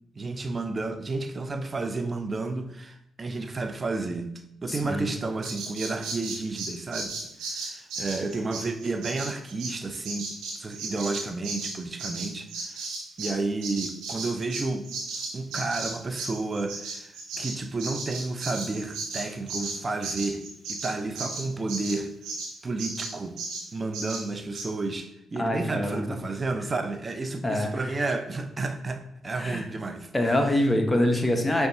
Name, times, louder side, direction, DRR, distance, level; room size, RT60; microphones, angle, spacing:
voice 1, 0.1-4.3 4.6-7.1 7.4-10.3 10.6-12.9 13.2-14.9 15.3-20.4 20.7-22.1 22.6-23.4 23.7-30.1, right 3 dB, 35° right, 7 dB, 0.5 m, -31 dB
voice 2, 4.7-5.1 25.4-26.2 27.4-27.7 29.4-29.6 30.1-31.7, left 1 dB, 20° left, 3 dB, 0.7 m, -25 dB
Bird vocalization bird call bird song, 5.4-13.4 13.6-22.5 22.8-23.1 23.4-23.6 23.9-24.2 24.5-24.7, right 3 dB, 80° right, 0.8 m, -35 dB
5.2 x 2.2 x 2.7 m, 0.76 s
supercardioid pair, 50°, 0 cm